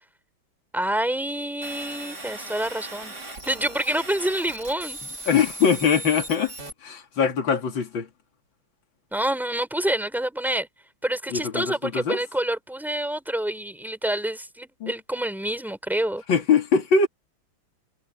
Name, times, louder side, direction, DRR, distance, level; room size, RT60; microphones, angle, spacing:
voice 1, 0.7-3.1 3.5-5.0 9.1-10.7 11.0-16.2, right 1 dB, ahead, 4.8 m, -27 dB
sound 1, 1.6-6.7, right 2 dB, 50° right, 5.3 m, -38 dB
voice 2, 5.3-6.5 6.8-8.1 11.3-12.2 14.8-14.9 16.3-17.1, left 6 dB, 65° left, 3.1 m, -22 dB
omnidirectional pair, 2.2 m